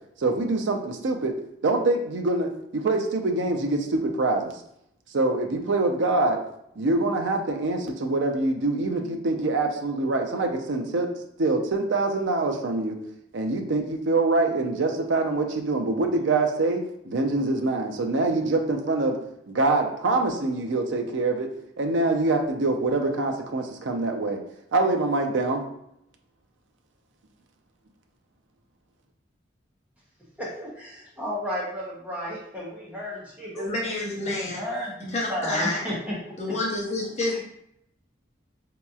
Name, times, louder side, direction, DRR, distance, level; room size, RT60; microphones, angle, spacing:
voice 1, 0.2-1.3 1.6-4.5 5.1-6.4 6.8-11.1 11.4-13.0 13.3-19.2 19.5-21.5 21.8-24.4 24.7-25.6, right 2 dB, 75° right, 3 dB, 0.5 m, -24 dB
voice 2, 30.4-33.7 34.2-36.2 36.5-36.6 37.3-37.4, equal, 5° right, -7 dB, 0.8 m, -33 dB
voice 3, 33.6-34.6 35.1-35.8 36.4-37.4, left 2 dB, 35° left, -2 dB, 0.7 m, -28 dB
4.0 x 2.9 x 2.3 m, 0.76 s
head